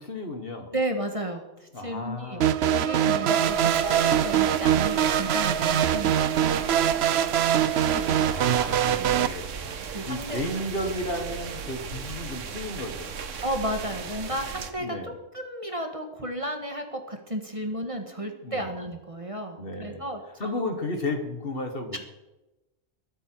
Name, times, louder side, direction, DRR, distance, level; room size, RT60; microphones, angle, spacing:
voice 1, 0.0-0.7 1.7-2.5 3.2-3.4 8.2-13.2 14.8-15.2 18.1-18.7 19.6-20.1 20.4-22.0, left 1 dB, 50° left, 5 dB, 1.8 m, -34 dB
voice 2, 0.7-6.8 7.9-8.3 8.9-9.1 9.9-10.4 13.4-20.6 21.9-22.0, right 1 dB, 25° right, 4 dB, 1.6 m, -33 dB
sound 1, 2.4-9.3, right 10 dB, 65° right, 0.8 m, -23 dB
sound 2, 3.4-14.7, right 6 dB, 90° right, 1.4 m, -37 dB
22.0 x 8.1 x 4.6 m, 1.0 s
omnidirectional pair, 1.3 m